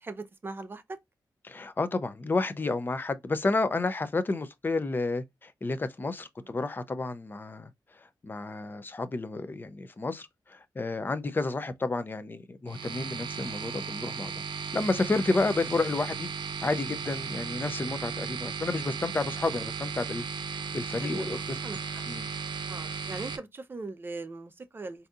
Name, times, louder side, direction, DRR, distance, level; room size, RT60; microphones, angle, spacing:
voice 1, 0.0-1.0 11.0-11.2 17.3-17.5 21.0-21.8 22.7-25.1, right 3 dB, 30° right, 0.5 m, -40 dB
voice 2, 1.4-14.3 14.7-16.3 16.6-21.6 22.1-22.3, left 3 dB, 25° left, 0.5 m, -31 dB
sound 1, 12.7-23.4, right 6 dB, 80° right, 0.6 m, -36 dB
3.9 x 2.7 x 2.3 m
wide cardioid pair, 130°, 8 cm